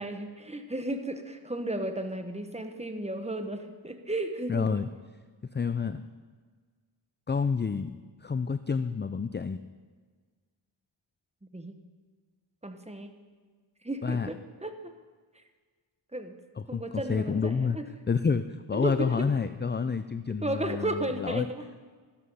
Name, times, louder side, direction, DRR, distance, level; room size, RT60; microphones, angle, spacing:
voice 1, 0.0-4.8 11.5-11.8 12.6-13.1 13.8-14.9 16.1-16.3 16.7-17.9 18.7-19.3 20.4-21.6, right 1 dB, 15° right, 6 dB, 1.3 m, -34 dB
voice 2, 4.5-4.9 5.5-6.0 7.3-9.6 14.0-14.3 16.6-17.8 18.1-21.5, left 5 dB, 25° left, 11 dB, 0.4 m, -29 dB
13.5 x 12.5 x 5.5 m, 1.5 s
wide cardioid pair, 70°, 49 cm